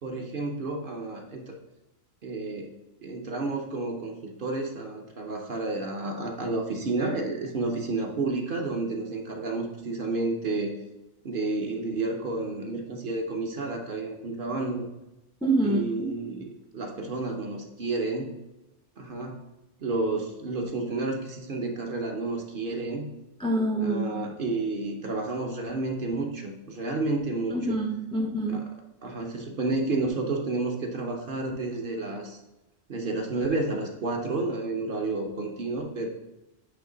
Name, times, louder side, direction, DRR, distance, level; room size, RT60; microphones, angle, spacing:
voice 1, 0.0-1.5 2.2-2.7 3.0-10.8 11.2-14.9 15.6-18.3 19.0-19.4 19.8-23.1 23.8-27.8 28.5-28.7 29.0-32.4 32.9-36.1, right 3 dB, 50° right, 1 dB, 0.8 m, -31 dB
voice 2, 15.4-16.1 23.4-24.3 27.5-28.6, right 2 dB, 5° left, 1 dB, 0.4 m, -26 dB
8.4 x 3.1 x 3.8 m, 0.98 s
omnidirectional pair, 1.4 m